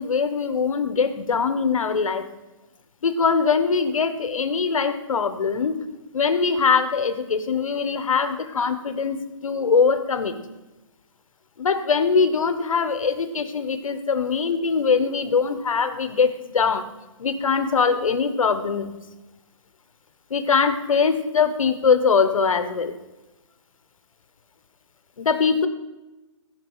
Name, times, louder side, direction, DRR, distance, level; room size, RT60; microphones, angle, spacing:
voice 1, 0.0-2.3 3.0-5.8 6.1-10.3 11.6-16.8 17.2-18.9 20.3-22.9 25.2-25.7, left 5 dB, 80° left, 11 dB, 1.1 m, -22 dB
15.5 x 5.4 x 5.5 m, 1.1 s
hypercardioid pair, 160°, 17 cm